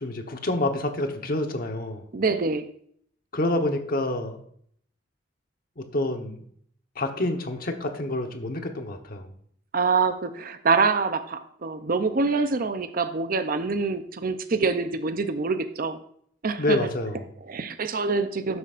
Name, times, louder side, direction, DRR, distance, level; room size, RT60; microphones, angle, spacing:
voice 1, 0.0-2.0 3.3-4.4 5.8-6.4 7.0-9.3 16.6-17.3, left 1 dB, 50° left, 5 dB, 1.1 m, -28 dB
voice 2, 2.1-2.7 9.7-16.0 16.4-16.9 17.5-18.6, right 4 dB, 50° right, 10 dB, 0.6 m, -25 dB
12.0 x 8.0 x 2.5 m, 0.64 s
head